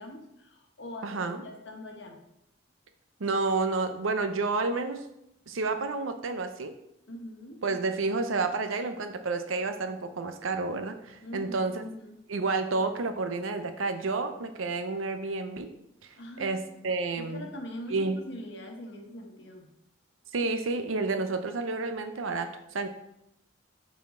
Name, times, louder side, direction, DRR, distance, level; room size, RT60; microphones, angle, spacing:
voice 1, 0.0-2.2 7.1-7.6 11.2-12.2 16.1-19.7, equal, 60° left, 2 dB, 1.1 m, -43 dB
voice 2, 1.0-1.4 3.2-5.0 5.5-6.7 7.6-11.8 12.3-15.7 16.0-16.1 16.4-17.5 17.9-18.2 20.3-22.9, right 3 dB, 85° right, 8 dB, 0.6 m, -30 dB
7.2 x 4.2 x 3.7 m, 0.83 s
head